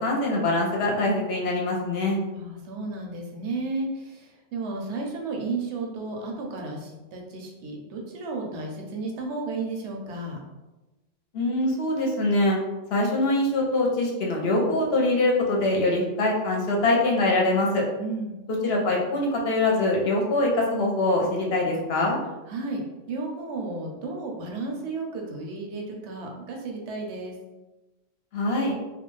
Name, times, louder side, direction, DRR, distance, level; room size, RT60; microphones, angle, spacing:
voice 1, 0.0-2.2 11.3-12.6 12.9-17.8 18.6-22.2 28.3-28.7, left 2 dB, 60° left, -1 dB, 0.8 m, -23 dB
voice 2, 2.3-10.4 18.0-18.4 22.5-27.3, right 3 dB, 70° right, 0 dB, 0.8 m, -33 dB
2.4 x 2.3 x 3.1 m, 1.1 s
omnidirectional pair, 1.3 m